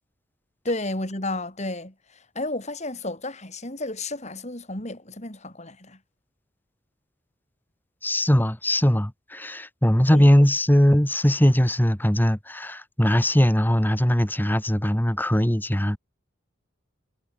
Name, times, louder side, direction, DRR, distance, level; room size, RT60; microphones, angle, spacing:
voice 1, 0.6-1.9 2.3-6.0 10.1-10.3, left 2 dB, 35° left, 5.1 m, -32 dB
voice 2, 8.0-16.0, equal, 10° left, 1.7 m, -20 dB
head